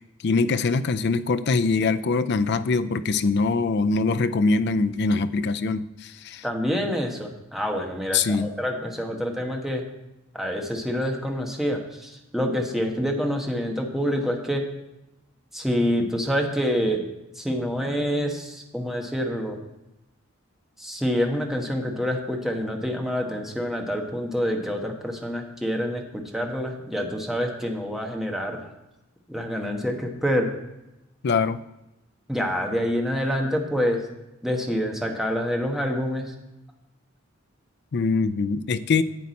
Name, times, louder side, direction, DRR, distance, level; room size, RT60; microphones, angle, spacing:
voice 1, 0.2-6.4 8.1-8.5 31.2-31.6 37.9-39.0, left 4 dB, 55° left, 12 dB, 0.4 m, -23 dB
voice 2, 6.4-9.8 10.3-14.7 15.5-17.0 17.4-19.6 20.8-28.7 29.3-30.5 32.3-34.1 34.4-36.3, equal, ahead, 1 dB, 1.2 m, -27 dB
10.5 x 8.2 x 4.2 m, 0.94 s
head